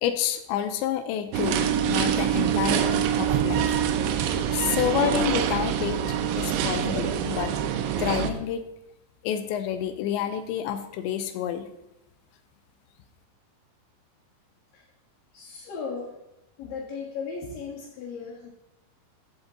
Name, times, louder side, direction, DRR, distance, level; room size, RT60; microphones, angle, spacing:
voice 1, 0.0-3.8 4.5-6.0 6.4-7.5 8.0-8.6 9.2-11.7, left 10 dB, 85° left, 9 dB, 2.9 m, -28 dB
sound 1, 1.3-8.3, right 9 dB, 85° right, 3.1 m, -25 dB
voice 2, 15.3-16.2 16.6-18.5, left 5 dB, 60° left, -6 dB, 2.7 m, -36 dB
15.0 x 6.0 x 3.9 m, 0.92 s
omnidirectional pair, 5.3 m